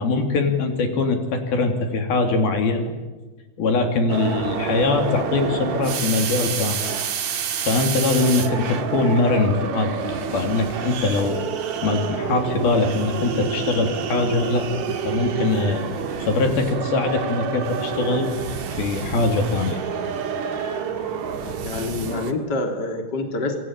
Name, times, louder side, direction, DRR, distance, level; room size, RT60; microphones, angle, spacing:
voice 1, 0.0-2.9 3.6-6.9 7.7-11.4 11.8-14.7 15.0-15.8 16.2-18.3 18.7-19.8, left 3 dB, 70° left, 5 dB, 4.7 m, -22 dB
sound 1, 4.1-22.3, right 7 dB, 55° right, 2.9 m, -28 dB
voice 2, 21.6-23.6, left 2 dB, 30° left, 5 dB, 3.6 m, -26 dB
27.0 x 23.5 x 8.9 m, 1.2 s
omnidirectional pair, 4.5 m